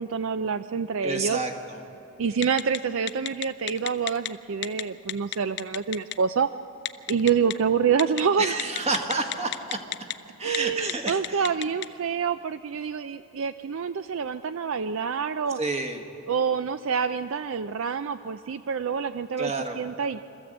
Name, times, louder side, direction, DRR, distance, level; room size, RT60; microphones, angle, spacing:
voice 1, 0.0-1.4 2.2-6.5 7.1-8.6 10.4-15.6 16.3-19.5 19.8-20.2, right 6 dB, 60° right, 11 dB, 0.4 m, -27 dB
voice 2, 1.0-1.8 8.4-10.1 10.4-11.5 15.5-16.0 19.4-19.8, right 3 dB, 30° right, 4 dB, 1.5 m, -30 dB
Telephone, 2.4-2.8 3.1-4.3 4.6-4.8 5.1-6.1 6.9-7.5 8.0-8.2 8.6-10.1 10.4-10.6 10.9-11.9, left 12 dB, 50° left, 0.5 m, -29 dB
25.5 x 14.0 x 8.0 m, 2.8 s
head